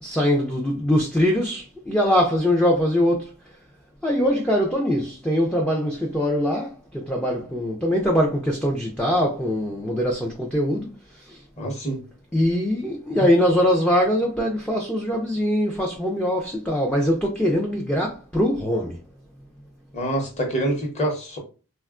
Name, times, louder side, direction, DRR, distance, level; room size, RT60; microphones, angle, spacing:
voice 1, 0.0-3.3 4.0-10.9 11.3-11.4 12.3-19.0, equal, 5° left, 0.3 m, -22 dB
voice 2, 11.6-12.0 13.2-13.3 19.9-21.4, right 1 dB, 30° left, 0.8 m, -26 dB
3.4 x 2.2 x 2.4 m
head